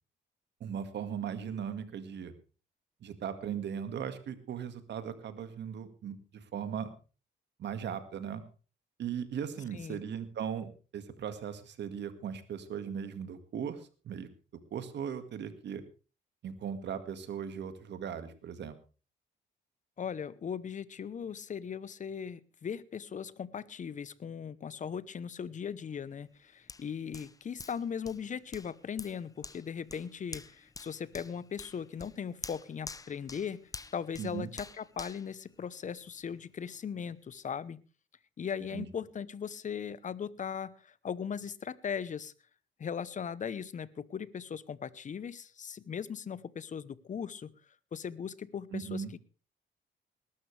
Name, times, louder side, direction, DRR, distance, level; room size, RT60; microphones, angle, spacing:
voice 1, 0.6-2.3 3.0-6.9 7.6-8.4 9.0-14.3 14.7-15.8 16.4-18.8 34.2-34.5 38.7-38.9 48.7-49.1, right 8 dB, 65° right, 10 dB, 2.0 m, -38 dB
voice 2, 20.0-33.6 33.9-37.8 38.4-42.3 42.8-47.5 47.9-49.0, left 7 dB, 40° left, 19 dB, 0.9 m, -38 dB
Hands, 26.7-36.2 36.7-36.8, left 3 dB, 20° left, 0.6 m, -48 dB
20.0 x 12.5 x 3.4 m, 0.35 s
cardioid pair, 95°, 19 cm